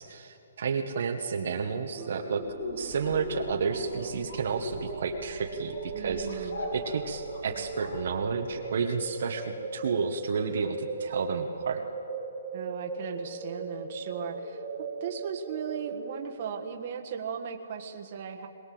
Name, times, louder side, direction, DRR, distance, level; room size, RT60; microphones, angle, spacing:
voice 1, 0.0-2.4 2.8-11.8, right 5 dB, 50° right, 3 dB, 1.3 m, -31 dB
sound 1, 2.0-16.7, right 4 dB, 15° right, 1.7 m, -38 dB
sound 2, 2.4-8.7, left 2 dB, 70° left, 5.0 m, -41 dB
voice 2, 5.9-6.6 12.5-14.6 15.0-18.5, right 7 dB, 35° right, 3 dB, 1.6 m, -37 dB
22.0 x 21.0 x 7.8 m, 2.7 s
hypercardioid pair, 175°, 0 cm